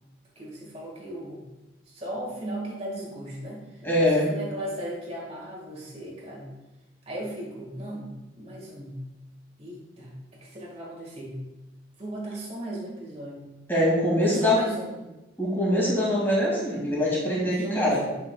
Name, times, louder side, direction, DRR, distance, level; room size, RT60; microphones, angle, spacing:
voice 1, 0.4-1.4 1.9-6.5 7.1-8.1 8.4-9.0 9.6-10.1 10.4-11.4 12.0-13.5 14.4-15.1 17.6-18.2, right 1 dB, 30° right, -3 dB, 1.9 m, -36 dB
voice 2, 3.8-4.2 13.7-14.6 15.4-18.0, left 1 dB, 10° left, -7 dB, 2.3 m, -23 dB
8.8 x 5.9 x 2.4 m, 1.0 s
head